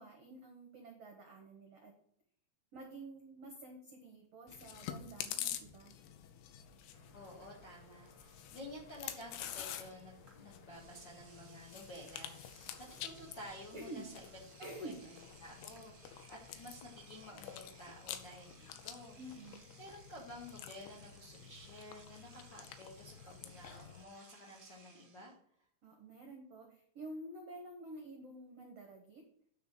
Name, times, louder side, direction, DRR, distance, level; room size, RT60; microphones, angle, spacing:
voice 1, 0.0-1.9 2.7-5.9 13.7-14.1 14.6-15.0 19.2-19.6 25.8-29.2, right 1 dB, 75° right, 3 dB, 1.4 m, -49 dB
Chewing mastication, 4.5-24.0, left 11 dB, 85° left, 3.1 m, -49 dB
sound 1, 6.9-18.0, left 1 dB, 35° left, 2.2 m, -65 dB
voice 2, 7.1-14.3 14.6-19.2 19.8-25.3, left 1 dB, 60° left, -2 dB, 1.2 m, -52 dB
Engine / Domestic sounds home sounds, 10.3-10.4 10.7-25.3, right 3 dB, 45° right, 0.9 m, -62 dB
9.7 x 4.3 x 7.4 m, 0.67 s
omnidirectional pair, 5.1 m